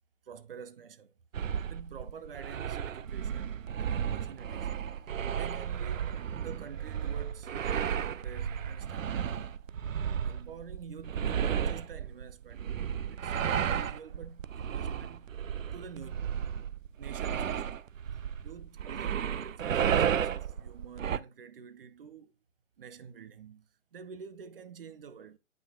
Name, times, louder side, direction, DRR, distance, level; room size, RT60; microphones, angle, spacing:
voice 1, 0.2-1.1 1.7-5.1 5.3-9.5 10.2-12.7 13.1-15.4 15.7-17.6 18.4-22.3 22.8-25.4, right 6 dB, 45° right, 0.9 m, -48 dB
sound 1, 1.3-21.2, right 8 dB, 75° right, 0.6 m, -33 dB
9.0 x 5.6 x 2.5 m
figure-of-eight pair, 145°, 39 cm